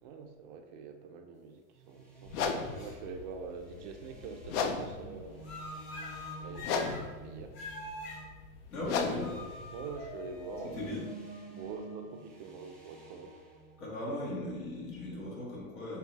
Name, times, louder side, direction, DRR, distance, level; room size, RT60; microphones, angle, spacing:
voice 1, 0.0-5.6 6.4-7.6 9.7-11.0 11.5-13.4, right 4 dB, 40° right, 5 dB, 0.4 m, -45 dB
sound 1, 1.7-15.4, right 3 dB, ahead, 0.8 m, -52 dB
sound 2, 2.3-11.0, left 5 dB, 60° left, 0.5 m, -38 dB
sound 3, 5.4-7.1 7.5-8.3 9.2-12.4, left 2 dB, 40° left, 0.9 m, -45 dB
voice 2, 8.7-9.4 10.7-11.1 13.8-16.0, left 1 dB, 75° left, -6 dB, 1.5 m, -38 dB
3.3 x 2.8 x 3.2 m, 1.3 s
hypercardioid pair, 115°, 42 cm